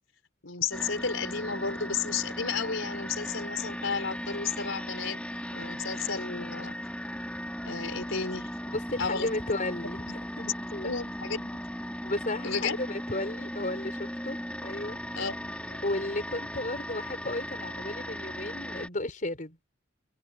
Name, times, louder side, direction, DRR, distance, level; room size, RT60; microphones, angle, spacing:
voice 1, 0.4-5.2 5.5-6.8 7.6-8.6 9.0-9.6 10.1-10.5 10.8-11.6 12.4-12.8 15.1-15.9, left 5 dB, 90° left, 3.9 m, -33 dB
sound 1, 0.7-18.9, equal, 5° left, 3.9 m, -37 dB
voice 2, 8.7-10.4 10.7-10.9 12.0-15.2 15.8-19.6, left 2 dB, 40° left, 5.3 m, -34 dB
head